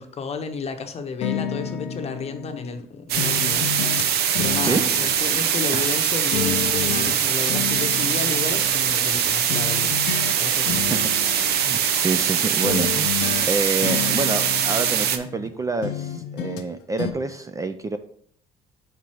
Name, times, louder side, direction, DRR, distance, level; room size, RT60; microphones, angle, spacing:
voice 1, 0.0-9.9 10.4-10.9, left 5 dB, 40° left, 6 dB, 0.8 m, -32 dB
sound 1, 1.2-2.8 3.2-6.0 6.3-9.2 9.5-10.4 10.6-12.3 12.6-15.5 15.8-16.7 17.0-17.1, left 8 dB, 90° left, 0.7 m, -31 dB
sound 2, 3.1-15.2, right 9 dB, 70° right, 0.7 m, -22 dB
voice 2, 10.7-18.0, right 3 dB, 20° right, 9 dB, 0.4 m, -28 dB
5.2 x 4.4 x 4.8 m, 0.62 s
cardioid pair, 110°, 17 cm